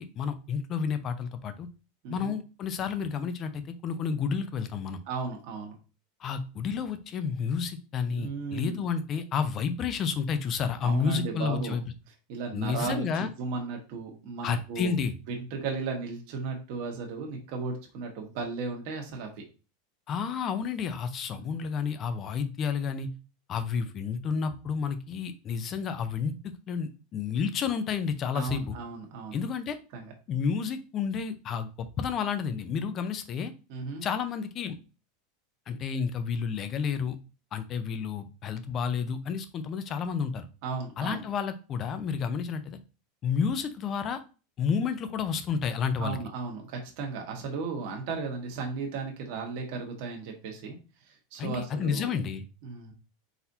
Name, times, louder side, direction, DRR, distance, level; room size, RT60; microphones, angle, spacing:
voice 1, 0.0-1.7 2.1-5.0 6.2-11.8 12.5-13.3 14.4-15.1 20.1-23.1 23.5-26.3 26.7-28.8 29.3-29.8 30.3-33.5 34.0-34.8 35.7-37.2 37.5-40.5 41.0-42.8 43.2-44.2 44.6-46.2 51.4-52.4, left 6 dB, 30° left, 10 dB, 0.5 m, -30 dB
voice 2, 5.1-5.7 8.2-8.8 10.8-11.8 12.3-14.9 15.3-19.3 21.3-21.5 28.3-29.4 29.9-30.1 33.7-34.1 40.6-41.3 46.0-50.8 51.1-52.1 52.6-52.9, right 4 dB, 50° right, 1 dB, 1.2 m, -35 dB
4.2 x 4.0 x 2.7 m, 0.33 s
supercardioid pair, 160°, 0 cm